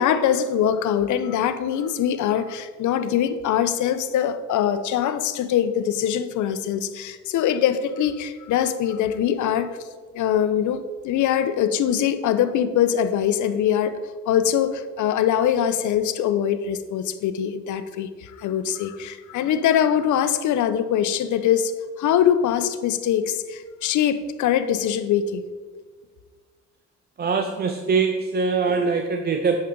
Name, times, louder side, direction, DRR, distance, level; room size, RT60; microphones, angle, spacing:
voice 1, 0.0-9.8 10.1-14.0 14.3-21.7 22.0-25.4, left 9 dB, 75° left, 12 dB, 0.6 m, -23 dB
voice 2, 27.2-29.6, right 5 dB, 35° right, 5 dB, 0.6 m, -22 dB
8.5 x 6.6 x 3.8 m, 1.5 s
cardioid pair, 90°, 30 cm